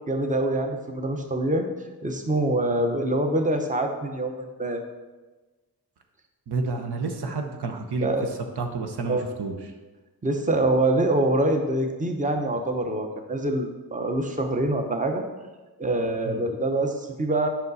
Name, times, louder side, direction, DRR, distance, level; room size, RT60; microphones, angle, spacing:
voice 1, 0.1-1.7 2.0-4.8 8.0-8.3 9.1-9.2 10.2-15.2 15.8-17.5, right 1 dB, 20° right, 4 dB, 0.8 m, -25 dB
voice 2, 6.5-8.1 8.6-9.6 16.3-16.4, right 3 dB, 80° right, 4 dB, 1.0 m, -30 dB
8.2 x 5.7 x 4.1 m, 1.2 s
wide cardioid pair, 95°, 38 cm